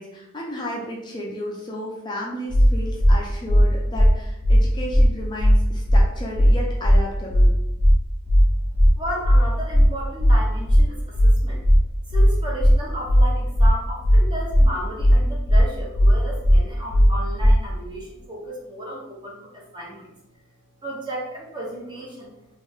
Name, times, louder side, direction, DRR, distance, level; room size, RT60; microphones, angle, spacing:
voice 1, 0.0-7.5, equal, 20° left, -2 dB, 0.5 m, -33 dB
sound 1, 2.5-2.7 3.0-3.1 3.5-3.6 3.9-4.1 4.4-4.6 4.9-5.1 5.4-5.5 5.9-6.0 6.3-6.5 6.8-7.0 7.3-7.5 7.8-7.9 8.3-8.4 8.7-8.9 9.2-9.4 9.7-9.9 10.2-10.3 10.7-10.8 11.1-11.3 11.6-11.8 12.1-12.3 12.6-12.7 13.1-13.2 13.5-13.7 14.0-14.2 14.5-14.7 15.0-15.1 15.5-15.6 15.9-16.1 16.4-16.6 16.9-17.1 17.4-17.5, equal, 65° right, 1.1 m, -15 dB
voice 2, 9.0-11.6 12.1-20.1 20.8-22.3, equal, 20° right, -3 dB, 0.8 m, -34 dB
3.4 x 2.6 x 3.4 m, 0.89 s
head